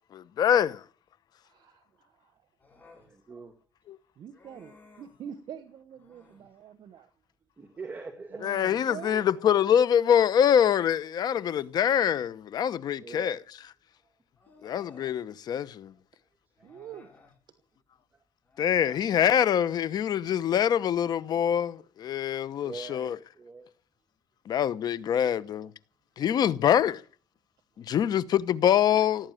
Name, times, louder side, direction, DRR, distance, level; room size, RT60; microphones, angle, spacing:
voice 1, 0.1-0.8 3.9-4.0 8.4-13.4 14.6-15.9 18.6-23.2 24.5-25.7 26.2-27.0 27.8-29.3, left 9 dB, 55° left, 1.0 m, -25 dB
voice 2, 1.5-2.3 4.2-7.1 8.3-9.3 16.6-17.1, right 9 dB, 60° right, 1.2 m, -45 dB
Human voice, 2.6-3.1 4.3-5.2 6.0-6.5 8.4-10.2 10.5-10.7 11.2-12.4 13.6-13.7 14.4-15.2 16.6-17.4 18.4-19.1, left 3 dB, 20° left, 7.3 m, -57 dB
voice 3, 2.9-3.5 7.6-8.4 13.0-13.4 22.6-23.1 23.4-23.7, right 4 dB, 20° right, 1.9 m, -42 dB
17.5 x 9.0 x 9.0 m
cardioid pair, 145°, 8 cm